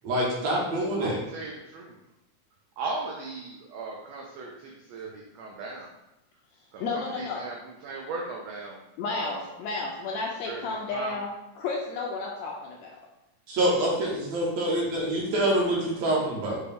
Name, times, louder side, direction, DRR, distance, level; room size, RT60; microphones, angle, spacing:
voice 1, 0.0-1.2 13.5-16.6, right 1 dB, 65° right, -4 dB, 2.2 m, -26 dB
voice 2, 1.0-1.9 2.8-4.5 4.9-5.9 6.7-6.8 7.2-7.5 7.8-8.8 9.1-9.4 10.5-10.6 10.9-11.1, right 3 dB, 85° right, 0 dB, 1.5 m, -36 dB
voice 3, 6.8-7.4 9.0-13.0, left 4 dB, 80° left, -2 dB, 1.6 m, -32 dB
6.7 x 2.3 x 3.4 m, 0.94 s
omnidirectional pair, 3.6 m